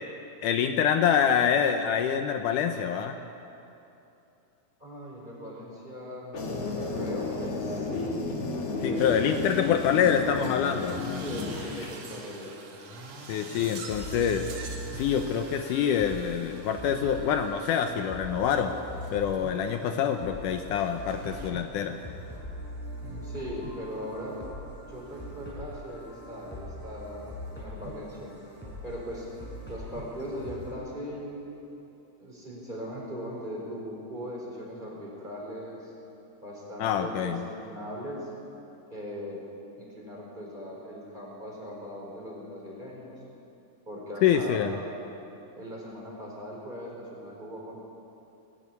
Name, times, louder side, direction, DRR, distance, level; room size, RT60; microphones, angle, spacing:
voice 1, 0.4-3.2 8.8-11.0 13.3-14.5 15.0-18.8 19.1-22.0 36.8-37.4 44.2-44.7, left 8 dB, 75° left, 6 dB, 2.2 m, -26 dB
voice 2, 4.8-8.2 8.9-9.4 11.1-12.6 23.0-24.4 24.9-28.3 28.8-29.3 29.7-31.5 32.2-35.9 36.4-38.3 38.9-39.4 39.8-43.2 43.9-45.0 45.5-47.8, equal, 15° right, -3 dB, 4.3 m, -39 dB
sound 1, 6.3-11.9, left 3 dB, 50° left, 2.9 m, -32 dB
sound 2, 9.0-21.5, right 3 dB, 55° right, 2.9 m, -46 dB
sound 3, 13.9-30.7, equal, 5° left, 4.9 m, -42 dB
20.0 x 14.0 x 9.6 m, 2.8 s
omnidirectional pair, 3.8 m